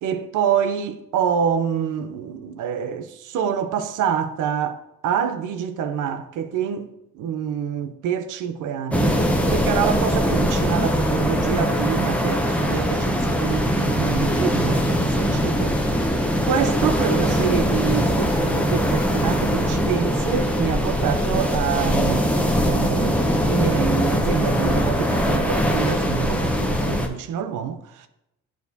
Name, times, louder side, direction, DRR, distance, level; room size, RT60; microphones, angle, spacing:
voice 1, 0.0-16.1 16.4-22.3 22.7-28.1, right 8 dB, 85° right, 0.6 m, -26 dB
sound 1, 8.9-27.1, equal, 5° left, 0.8 m, -21 dB
8.1 x 4.6 x 2.7 m
cardioid pair, 90°, 30 cm